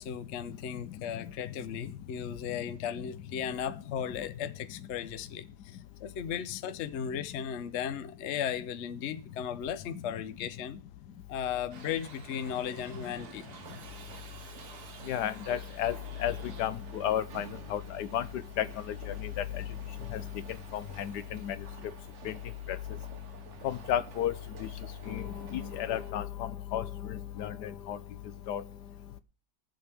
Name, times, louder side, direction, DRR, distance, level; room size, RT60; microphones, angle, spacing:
voice 1, 0.0-10.8 11.3-13.5, left 8 dB, 55° left, 0.9 m, -36 dB
Shout / Livestock farm animals working animals, 11.7-16.7, right 5 dB, 70° right, 1.9 m, -51 dB
sound 1, 12.4-26.1, right 6 dB, 50° right, 1.1 m, -51 dB
voice 2, 15.1-15.9 16.2-18.3 18.6-18.7 19.4-19.5 20.1-20.2 20.7-21.6 22.2-22.3 22.7-22.8 23.6-24.3 25.1-25.2 25.5-28.0 28.5-28.6, left 10 dB, 80° left, 1.3 m, -32 dB
20.5 x 7.9 x 3.4 m
omnidirectional pair, 1.8 m